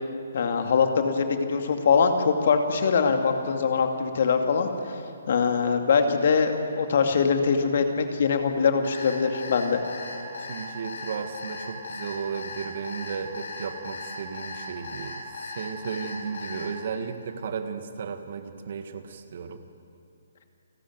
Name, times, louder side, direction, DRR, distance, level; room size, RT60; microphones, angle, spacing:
voice 1, 0.3-4.7 5.3-9.8, left 5 dB, 55° left, 5 dB, 2.4 m, -23 dB
Alarm, 8.8-16.7, left 3 dB, 75° left, 6.7 m, -37 dB
voice 2, 10.4-19.6, right 6 dB, 55° right, 9 dB, 1.7 m, -34 dB
28.5 x 13.0 x 9.5 m, 2.6 s
hypercardioid pair, 145°, 0 cm